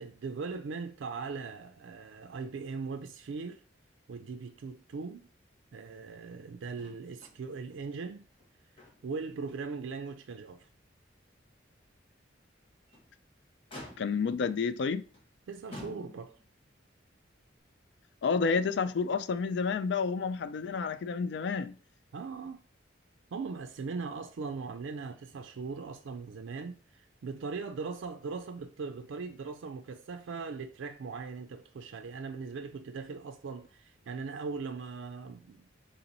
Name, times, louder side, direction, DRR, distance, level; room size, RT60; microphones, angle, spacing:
voice 1, 0.0-3.6 4.1-5.3 5.7-8.3 9.0-10.7 15.5-16.4 22.1-22.6 23.3-35.7, right 4 dB, 85° right, 0.4 m, -39 dB
Motor vehicle (road), 6.7-7.4 7.7-7.8 8.3-9.3 9.7-9.8 10.4-10.5 12.7-13.1 13.7-14.4 15.1-15.3 15.7-16.5 17.6-17.7, left 1 dB, 30° left, 1.2 m, -48 dB
voice 2, 14.0-15.0 18.2-21.8, left 5 dB, 60° left, 0.3 m, -30 dB
3.8 x 2.9 x 3.9 m
head